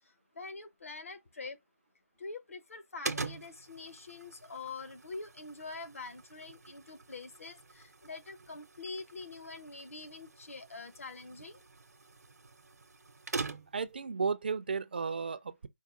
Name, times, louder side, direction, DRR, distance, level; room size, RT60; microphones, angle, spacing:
voice 1, 0.3-1.6 2.2-11.6, left 3 dB, 55° left, 0.8 m, -45 dB
sound 1, 3.0-13.9, right 4 dB, 85° right, 0.7 m, -44 dB
voice 2, 13.7-15.7, right 5 dB, 40° right, 0.3 m, -34 dB
4.6 x 2.2 x 3.6 m
figure-of-eight pair, 170°, 9 cm